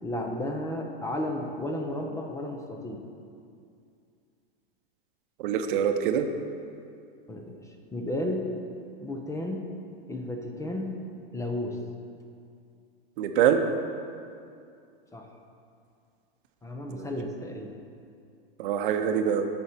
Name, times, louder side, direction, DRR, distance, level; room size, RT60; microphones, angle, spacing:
voice 1, 0.0-3.0 7.3-8.5 9.0-9.6 10.1-11.0 11.3-11.8 15.1-15.3 16.6-17.7, left 1 dB, 10° left, 3 dB, 0.8 m, -33 dB
voice 2, 5.4-6.3 13.2-13.6 16.9-17.1 18.6-19.5, right 8 dB, 60° right, 6 dB, 0.8 m, -25 dB
13.0 x 5.5 x 4.4 m, 2.4 s
hypercardioid pair, 125°, 29 cm